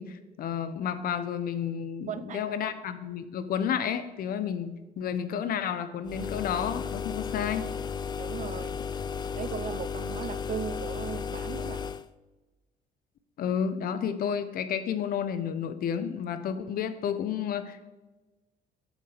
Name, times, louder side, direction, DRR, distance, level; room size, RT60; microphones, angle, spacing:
voice 1, 0.0-7.7 13.4-17.8, left 8 dB, 60° left, 11 dB, 0.9 m, -31 dB
voice 2, 2.1-2.5 7.3-7.4 8.2-8.8 9.3-11.9, right 8 dB, 50° right, 13 dB, 0.6 m, -37 dB
sound 1, 6.1-12.1, left 6 dB, 25° left, 0.4 m, -34 dB
8.3 x 7.4 x 5.0 m, 1.2 s
cardioid pair, 110°, 17 cm